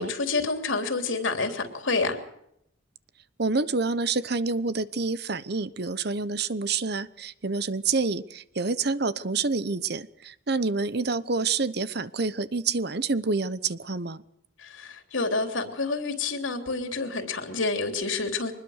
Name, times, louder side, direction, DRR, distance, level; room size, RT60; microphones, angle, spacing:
voice 1, 0.0-2.2 14.6-18.5, left 3 dB, 75° left, 5 dB, 3.2 m, -28 dB
voice 2, 3.4-14.2, right 4 dB, 55° right, 15 dB, 0.9 m, -28 dB
24.5 x 20.5 x 6.5 m, 0.77 s
head